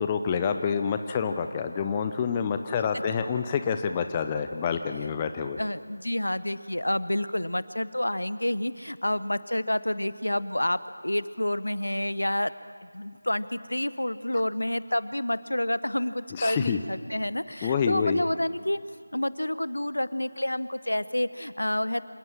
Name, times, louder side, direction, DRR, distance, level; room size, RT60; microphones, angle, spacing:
voice 1, 0.0-5.6 16.3-16.8 17.6-18.2, left 6 dB, 15° left, 7 dB, 0.7 m, -27 dB
voice 2, 5.6-12.5 12.8-18.8 19.1-22.0, left 1 dB, 75° left, 15 dB, 0.9 m, -29 dB
27.0 x 18.0 x 7.4 m, 2.1 s
figure-of-eight pair, 165°, 0 cm